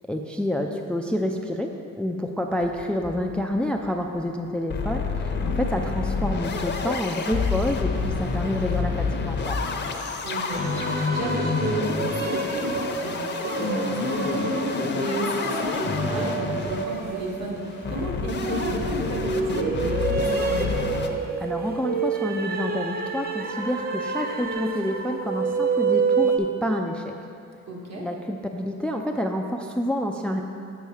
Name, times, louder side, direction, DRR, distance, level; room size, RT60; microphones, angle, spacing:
voice 1, 0.1-9.6 21.4-27.1 28.0-30.4, equal, 5° left, 3 dB, 0.4 m, -28 dB
sound 1, 2.6-3.5 3.8-3.9 4.2-4.3 4.7-21.1, left 4 dB, 35° left, 0.7 m, -28 dB
voice 2, 10.2-20.7 27.7-28.1, right 2 dB, 60° right, -3 dB, 1.8 m, -33 dB
sound 2, 10.5-26.4, right 4 dB, 30° right, 0.7 m, -28 dB
6.9 x 6.3 x 4.8 m, 2.4 s
cardioid pair, 90°, 30 cm